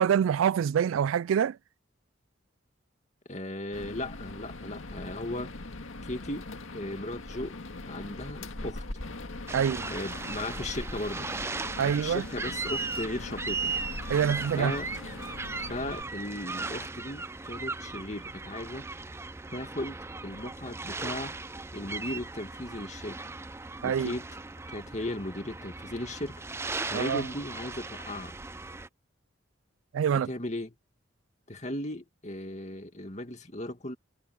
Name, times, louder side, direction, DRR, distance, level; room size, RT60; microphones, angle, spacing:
voice 1, 0.0-1.6 9.5-9.9 11.8-12.2 14.1-14.7 23.8-24.1 26.9-27.2 29.9-30.3, right 8 dB, 85° right, 0.3 m, -25 dB
voice 2, 3.3-5.5 6.0-6.5 6.7-7.6 7.9-8.8 9.9-11.3 11.8-13.7 14.6-14.9 15.7-18.9 19.5-20.0 20.2-21.3 21.7-23.2 23.8-24.4 24.7-26.4 26.9-28.4 30.3-30.7 31.5-34.0, left 1 dB, 35° left, 2.3 m, -36 dB
sound 1, 3.7-16.0, left 2 dB, 90° left, 2.0 m, -41 dB
sound 2, 9.5-28.9, right 3 dB, 15° right, 0.5 m, -37 dB
head